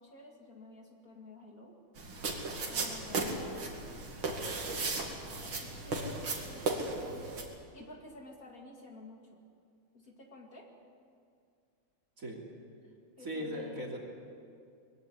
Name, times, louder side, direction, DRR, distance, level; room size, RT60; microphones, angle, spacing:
voice 1, 0.0-1.7 2.7-3.6 5.4-7.5 7.7-9.4 9.9-10.7 13.2-13.9, left 2 dB, 45° left, 1 dB, 2.6 m, -51 dB
sound 1, 2.0-7.4, right 3 dB, 80° right, 3.2 m, -36 dB
voice 2, 13.2-14.1, equal, 40° right, -1 dB, 3.4 m, -38 dB
22.0 x 16.0 x 9.9 m, 2.4 s
omnidirectional pair, 2.2 m